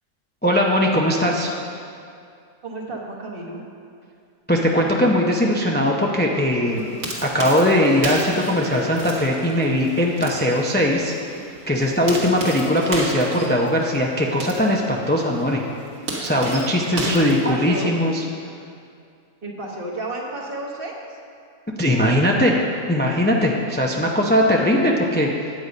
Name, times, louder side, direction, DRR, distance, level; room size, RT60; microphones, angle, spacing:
voice 1, 0.4-1.6 4.5-6.9 7.2-11.1 11.7-15.6 16.2-18.2 21.8-22.6 22.9-25.3, left 1 dB, 15° left, -1 dB, 0.4 m, -20 dB
voice 2, 2.6-3.6 17.0-17.9 19.4-21.2, right 2 dB, 40° right, -1 dB, 1.3 m, -31 dB
sound 1, 6.7-18.1, right 2 dB, 65° right, 2.0 m, -34 dB
9.4 x 8.2 x 5.2 m, 2.4 s
omnidirectional pair, 1.6 m